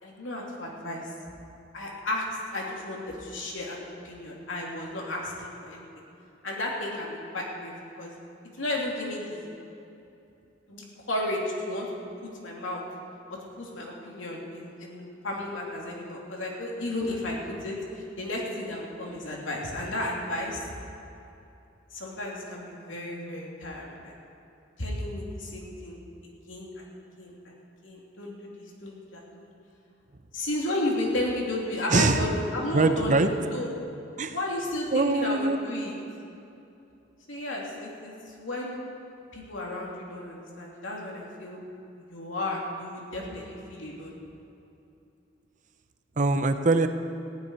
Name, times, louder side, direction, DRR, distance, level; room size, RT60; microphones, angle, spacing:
voice 1, 0.0-1.0 1.7-2.2 2.5-6.0 6.4-8.1 8.6-9.5 10.7-11.9 12.2-12.8 13.6-20.6 21.9-24.1 24.8-27.6 27.8-29.5 30.3-33.2 33.5-33.8 34.3-35.9 37.3-38.8 39.3-41.6 42.1-44.1, left 1 dB, 80° left, -2 dB, 3.0 m, -33 dB
voice 2, 31.9-32.2 32.7-33.3 34.2-34.4 34.9-35.6 46.2-46.9, right 3 dB, 40° right, 8 dB, 0.7 m, -22 dB
15.0 x 7.0 x 9.9 m, 2.8 s
head